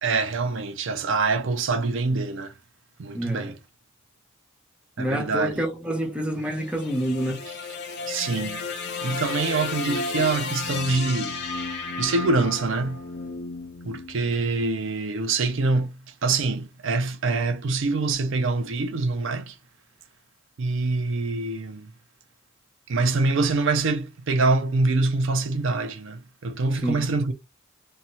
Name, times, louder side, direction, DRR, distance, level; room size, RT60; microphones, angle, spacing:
voice 1, 0.0-2.5 3.0-3.5 5.0-5.6 8.1-8.6 9.0-11.3 12.0-13.0 13.8-15.9 16.2-19.5 20.6-21.9 22.9-27.3, right 3 dB, 60° right, 0.4 m, -25 dB
voice 2, 3.1-3.5 5.0-7.4 26.7-27.0, equal, 5° right, 0.6 m, -28 dB
sound 1, 6.4-14.7, left 3 dB, 55° left, 0.5 m, -33 dB
2.7 x 2.3 x 2.9 m
head